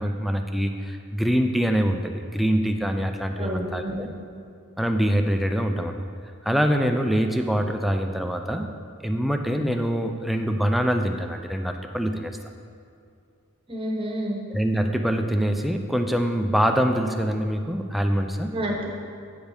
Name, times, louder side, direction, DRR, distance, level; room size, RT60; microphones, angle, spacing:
voice 1, 0.0-4.1 4.8-5.9 6.4-8.7 9.0-12.4 14.5-18.5, equal, ahead, 5 dB, 0.4 m, -24 dB
voice 2, 3.3-4.1 13.7-14.4 18.5-18.9, equal, 25° right, -1 dB, 1.1 m, -29 dB
9.2 x 5.2 x 5.0 m, 2.4 s
head